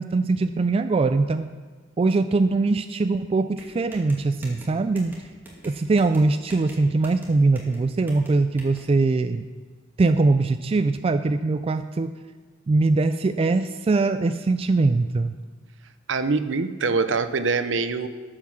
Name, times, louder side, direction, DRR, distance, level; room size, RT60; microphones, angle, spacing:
voice 1, 0.0-1.5 2.0-5.2 5.6-9.4 10.0-12.1 12.7-15.3, right 3 dB, 30° right, 9 dB, 0.3 m, -22 dB
sound 1, 3.6-8.8, right 1 dB, 10° right, 2.1 m, -45 dB
voice 2, 16.1-18.1, right 4 dB, 70° right, 11 dB, 0.7 m, -24 dB
13.5 x 5.9 x 6.2 m, 1.5 s
head